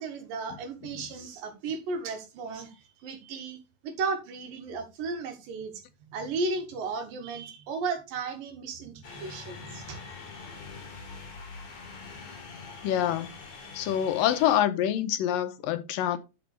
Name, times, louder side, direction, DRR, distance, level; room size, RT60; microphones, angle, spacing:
voice 1, 0.0-3.6 3.8-5.7 6.1-10.0, right 4 dB, 85° right, 3.5 m, -34 dB
sound 1, 9.0-14.6, left 4 dB, 65° left, 4.3 m, -44 dB
voice 2, 12.8-13.3 13.8-16.2, left 11 dB, 90° left, 2.7 m, -26 dB
11.5 x 6.0 x 3.4 m
omnidirectional pair, 3.8 m